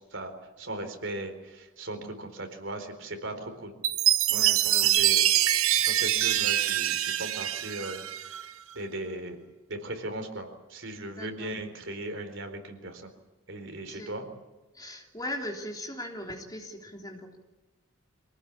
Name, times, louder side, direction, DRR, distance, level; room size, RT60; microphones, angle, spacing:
voice 1, 0.0-3.7 4.3-9.4 9.7-13.1 13.5-14.3, right 1 dB, 60° right, 6 dB, 4.2 m, -38 dB
Chime, 3.8-8.4, right 12 dB, 85° right, 1.0 m, -24 dB
voice 2, 4.3-5.0 11.1-11.5 13.9-14.3 14.7-17.4, left 1 dB, 20° left, 2 dB, 3.4 m, -39 dB
25.5 x 18.5 x 8.7 m, 1.1 s
head